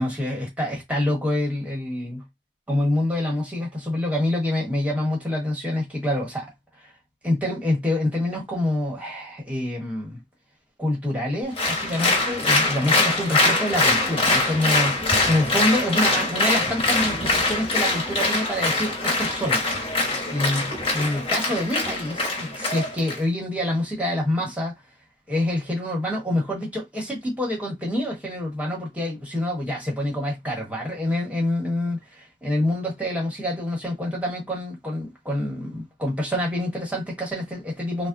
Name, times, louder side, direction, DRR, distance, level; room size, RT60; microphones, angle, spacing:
voice 1, 0.0-2.2 2.7-6.5 6.8-6.9 7.2-10.2 10.8-19.6 20.3-20.7 20.9-24.7 25.3-38.1, left 1 dB, 5° right, 1.2 m, -26 dB
Applause, 11.6-23.2, left 2 dB, 25° left, 1.2 m, -23 dB
3.4 x 2.1 x 2.5 m
head